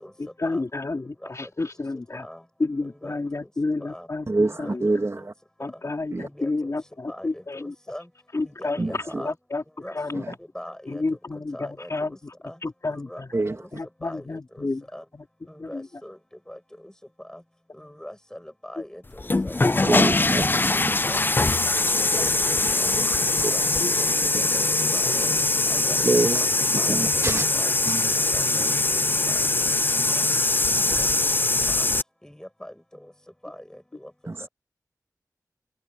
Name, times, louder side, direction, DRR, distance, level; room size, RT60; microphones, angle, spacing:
voice 1, 0.2-2.3 2.6-4.3 4.6-4.8 5.6-7.7 8.3-9.6 9.9-10.3 10.9-12.3 12.6-13.3 13.7-14.8 15.1-15.2 15.6-15.9 18.8-18.9 20.6-20.7 21.7-21.8 22.2-22.3 23.8-23.9 26.8-26.9 27.2-27.4, left 3 dB, 50° left, 3.7 m, -30 dB
voice 2, 2.8-3.2 3.9-4.1 4.4-4.7 6.2-6.5 7.1-8.1 8.4-9.3 9.8-10.2 10.5-11.0 11.5-12.2 12.4-12.6 12.9-13.7 14.0-14.7 14.9-15.0 15.5-16.2 16.5-16.9 17.3-17.4 17.8-19.0 19.4-20.4 20.9-21.2 23.3-23.6 24.0-24.1 24.7-25.3 25.7-26.0 26.8-27.1 27.6-27.7 28.1-28.7 29.3-29.4 29.8-29.9 30.2-30.3 30.9-31.1 32.2-32.7 33.4-33.6 34.0-34.1, left 1 dB, 10° left, 7.0 m, -41 dB
voice 3, 4.3-5.3 6.1-6.3 8.8-9.2 13.3-13.6 19.9-20.6 23.4-23.5 26.0-26.4 26.9-27.4 27.9-28.1 34.3-34.5, right 2 dB, 45° right, 2.7 m, -25 dB
sound 1, 19.1-32.0, left 2 dB, 30° left, 0.6 m, -22 dB
wide cardioid pair, 60°, 7 cm